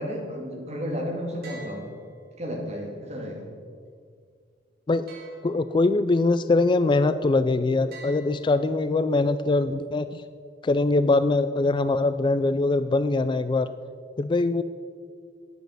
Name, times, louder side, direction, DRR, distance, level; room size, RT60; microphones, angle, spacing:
voice 1, 0.0-1.9 2.4-3.5, equal, 40° right, 0 dB, 2.3 m, -32 dB
sound 1, 1.4-2.7 5.1-6.1 7.9-9.1, right 3 dB, 60° right, 3.1 m, -48 dB
voice 2, 5.4-10.2 10.6-13.7 14.2-14.6, left 3 dB, 25° left, 12 dB, 0.3 m, -22 dB
10.5 x 9.1 x 6.4 m, 2.1 s
head